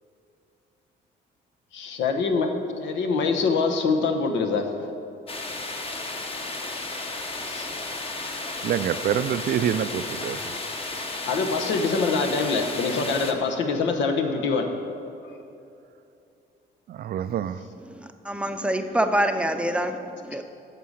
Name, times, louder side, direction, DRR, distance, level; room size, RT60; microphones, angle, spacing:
voice 1, 1.7-2.5 2.8-4.7 7.2-7.8 11.3-14.7, left 4 dB, 80° left, 4 dB, 1.1 m, -24 dB
sound 1, 5.3-13.3, left 2 dB, 30° left, 1.1 m, -33 dB
voice 2, 8.6-10.5 16.9-17.6, right 9 dB, 55° right, 13 dB, 0.4 m, -26 dB
voice 3, 17.9-20.4, right 1 dB, 5° right, 6 dB, 0.6 m, -26 dB
9.2 x 6.8 x 6.5 m, 2.8 s
cardioid pair, 100°, 19 cm